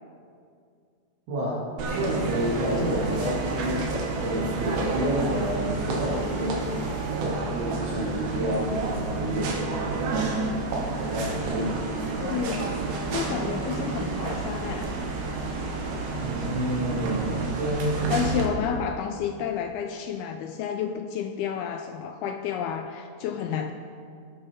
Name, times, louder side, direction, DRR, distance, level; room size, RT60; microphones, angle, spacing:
voice 1, 1.3-10.3 11.0-11.9 16.2-18.2, equal, 90° right, -9 dB, 5.1 m, -30 dB
sound 1, 1.8-18.5, right 3 dB, 65° right, 3.2 m, -30 dB
voice 2, 12.2-12.7 13.1-14.9 18.1-23.7, left 8 dB, 85° left, 6 dB, 2.3 m, -30 dB
20.0 x 8.7 x 5.3 m, 2.3 s
omnidirectional pair, 5.0 m